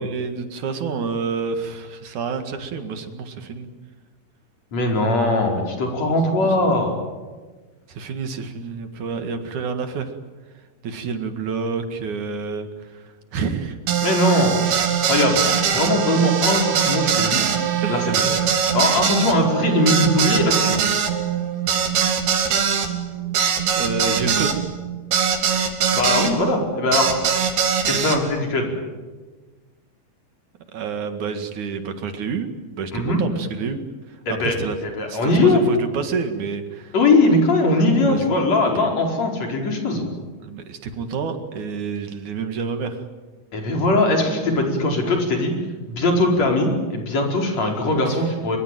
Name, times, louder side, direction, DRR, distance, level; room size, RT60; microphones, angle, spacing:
voice 1, 0.0-3.7 6.4-6.8 7.9-10.1 10.8-13.8 17.8-18.4 23.1-23.5 23.8-24.6 30.7-33.8 34.1-34.8 35.1-36.9 38.0-38.3 40.4-43.0 48.0-48.3, right 5 dB, 55° right, 7 dB, 3.1 m, -29 dB
voice 2, 4.7-6.9 14.0-14.6 15.1-15.4 15.7-17.4 17.9-18.2 18.7-20.8 25.9-27.2 27.9-28.7 32.9-33.2 34.3-34.6 34.8-35.6 36.9-40.1 43.5-45.5 45.9-48.6, left 2 dB, 45° left, 2 dB, 5.9 m, -20 dB
sound 1, 13.9-26.3 26.9-28.2, right 7 dB, 85° right, 4.2 m, -22 dB
24.5 x 23.5 x 9.3 m, 1.3 s
omnidirectional pair, 4.4 m